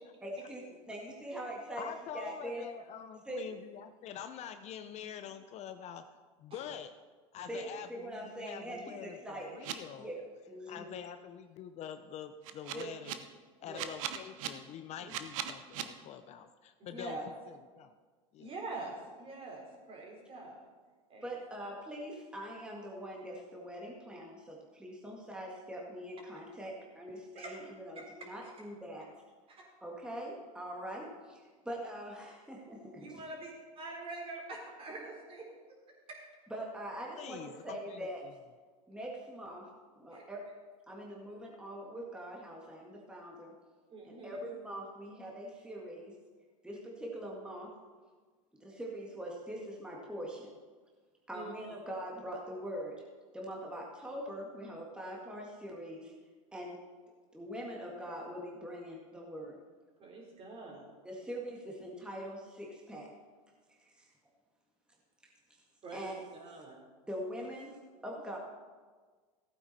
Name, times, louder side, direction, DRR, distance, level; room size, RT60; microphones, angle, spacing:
voice 1, 0.2-2.7 3.3-3.4 7.5-9.6 10.0-10.2 10.5-11.0 12.7-12.9 13.6-13.9 21.2-29.1 29.8-33.1 36.5-38.2 38.9-39.7 40.0-40.5 40.9-43.5 44.0-46.1 46.6-47.7 48.6-50.5 51.3-53.0 53.3-56.1 56.5-56.8 57.3-59.6 61.0-63.1 63.8-64.1 65.9-66.2 67.1-67.8 68.0-68.4, right 1 dB, 5° right, -2 dB, 1.9 m, -43 dB
voice 2, 1.8-6.0 6.4-6.9 7.3-10.1 10.7-13.2 13.6-17.2 17.5-18.0 18.3-18.5 37.2-38.3, left 9 dB, 40° left, 9 dB, 0.6 m, -45 dB
sound 1, 9.6-9.7 12.4-13.1 13.7-14.5 15.1-15.8, right 12 dB, 70° right, 1.0 m, -37 dB
voice 3, 16.8-17.3 18.4-20.6 21.1-21.3 27.4-27.6 28.0-28.1 28.4-28.5 29.5-29.6 33.0-35.8 36.1-36.2 40.1-40.2 43.9-44.5 51.3-51.8 60.0-60.8 65.8-66.1 66.4-66.8, right 2 dB, 30° right, -1 dB, 3.9 m, -45 dB
15.5 x 8.8 x 4.2 m, 1.5 s
supercardioid pair, 115°, 18 cm